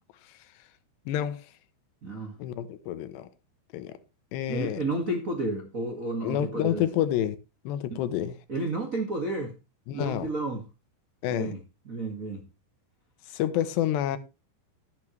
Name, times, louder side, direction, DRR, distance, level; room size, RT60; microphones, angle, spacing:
voice 1, 1.1-1.4 2.4-3.3 3.7-4.0 4.3-4.8 6.2-7.4 7.6-8.4 9.9-10.3 11.2-11.5 13.3-14.2, left 11 dB, 85° left, 3.1 m, -28 dB
voice 2, 2.0-2.3 4.5-6.8 8.5-9.5 9.9-10.6 11.3-11.6 11.8-12.4, right 2 dB, 50° right, 0.9 m, -31 dB
12.0 x 12.0 x 3.2 m
omnidirectional pair, 4.8 m